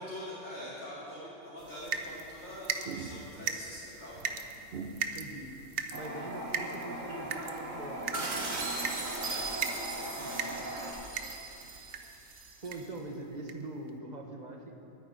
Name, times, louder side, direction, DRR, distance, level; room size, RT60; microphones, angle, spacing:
voice 1, 0.0-4.3 9.2-9.4 10.2-10.6, left 1 dB, 55° left, -11 dB, 3.4 m, -44 dB
sound 1, 1.6-12.2 12.7-13.0 13.5-13.6 13.9-14.0, right 5 dB, 55° right, 0.8 m, -39 dB
voice 2, 5.1-5.5 5.9-8.1 10.2-10.5 12.6-14.7, right 2 dB, 35° right, 2 dB, 1.3 m, -42 dB
Toilet flush, 5.9-10.9, right 1 dB, 70° right, 2.1 m, -39 dB
sound 2, 8.1-12.8, right 3 dB, 85° right, 1.9 m, -39 dB
9.3 x 9.3 x 9.5 m, 2.6 s
omnidirectional pair, 1.4 m